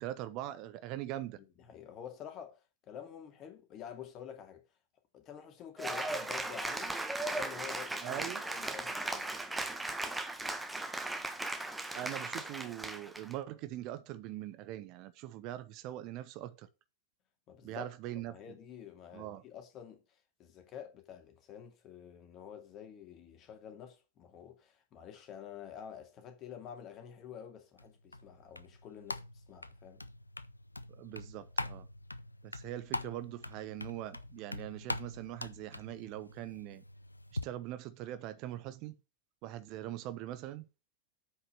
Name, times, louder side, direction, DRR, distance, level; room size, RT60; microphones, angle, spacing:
voice 1, 0.0-1.4 8.0-8.4 11.9-16.7 17.6-18.4 19.1-19.4 31.0-31.9 32.4-36.8 37.4-38.9 39.4-40.6, right 13 dB, 40° right, 0.9 m, -42 dB
voice 2, 1.4-4.6 5.1-7.0 7.2-9.3 17.5-17.9 18.3-30.0, left 9 dB, 35° left, 2.4 m, -49 dB
Cheering / Applause, 5.8-13.3, right 2 dB, 5° right, 1.3 m, -37 dB
sound 1, 27.8-37.4, left 2 dB, 85° left, 0.5 m, -43 dB
8.1 x 5.7 x 6.9 m
figure-of-eight pair, 90°, 0 cm